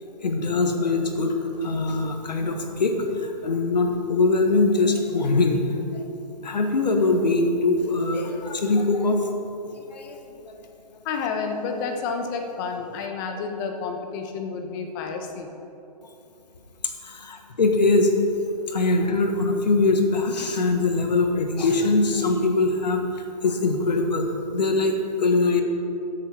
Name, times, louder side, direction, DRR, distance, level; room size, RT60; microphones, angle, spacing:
voice 1, 0.2-2.9 3.2-5.6 5.9-6.0 6.4-9.2 9.9-10.6 16.8-18.1 18.7-25.6, left 3 dB, 80° left, 4 dB, 1.5 m, -22 dB
voice 2, 11.0-15.5, left 5 dB, 30° left, 4 dB, 1.1 m, -30 dB
14.0 x 6.8 x 4.5 m, 2.9 s
hypercardioid pair, 145°, 21 cm